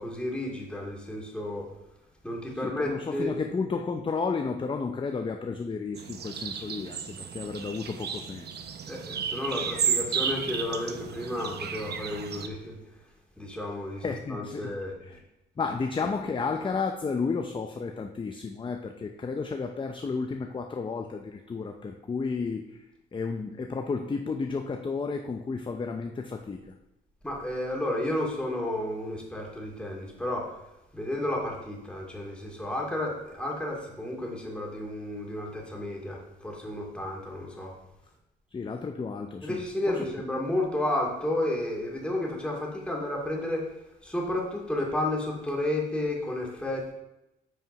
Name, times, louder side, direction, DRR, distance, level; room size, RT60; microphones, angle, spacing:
voice 1, 0.0-1.7 2.2-3.3 8.9-12.8 13.4-15.2 27.2-30.6 30.9-37.7 39.4-43.7 44.0-46.9, left 1 dB, 5° left, -2 dB, 2.4 m, -32 dB
voice 2, 2.5-8.6 14.0-14.8 15.0-15.2 15.6-22.8 23.1-26.7 38.5-40.0, left 4 dB, 25° left, 5 dB, 0.6 m, -32 dB
sound 1, 5.9-12.5, right 7 dB, 55° right, 0.8 m, -33 dB
8.0 x 5.0 x 5.4 m, 0.91 s
cardioid pair, 90°, 20 cm